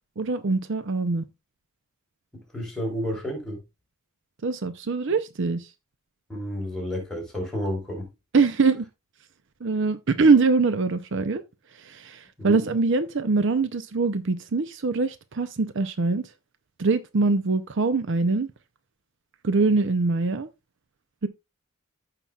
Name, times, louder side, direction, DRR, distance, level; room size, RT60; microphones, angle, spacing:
voice 1, 0.2-1.2 4.4-5.7 8.3-8.9 9.6-11.4 11.8-16.3 16.8-18.5 19.4-20.5 21.2-21.3, right 4 dB, 55° right, 0.6 m, -23 dB
voice 2, 2.5-3.6 6.3-8.0 12.4-12.6, equal, ahead, 4.0 m, -31 dB
15.0 x 5.8 x 2.4 m
head